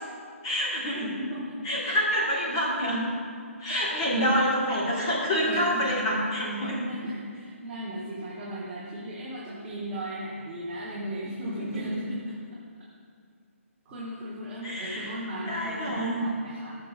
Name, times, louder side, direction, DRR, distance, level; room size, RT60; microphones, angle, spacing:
voice 1, 0.4-1.0 1.6-3.1 3.6-6.8 11.9-12.0 14.6-15.1 15.4-16.2, equal, 20° left, -5 dB, 1.3 m, -27 dB
voice 2, 1.0-1.6 3.9-4.2 5.4-6.0 6.4-12.2 13.9-16.7, equal, 10° right, -9 dB, 0.6 m, -36 dB
14.0 x 6.5 x 2.3 m, 2.2 s
hypercardioid pair, 175°, 8 cm